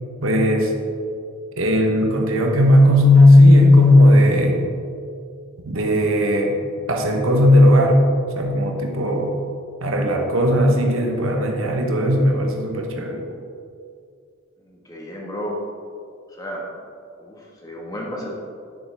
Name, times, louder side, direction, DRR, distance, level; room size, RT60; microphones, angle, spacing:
voice 1, 0.2-0.7 1.6-4.6 5.6-6.6 6.9-8.0 8.4-9.4 9.8-13.2, left 1 dB, 85° right, 2 dB, 1.1 m, -15 dB
voice 2, 14.6-15.6 16.3-16.7 17.2-18.3, equal, 15° left, -3 dB, 1.5 m, -33 dB
10.5 x 7.0 x 3.5 m, 2.3 s
head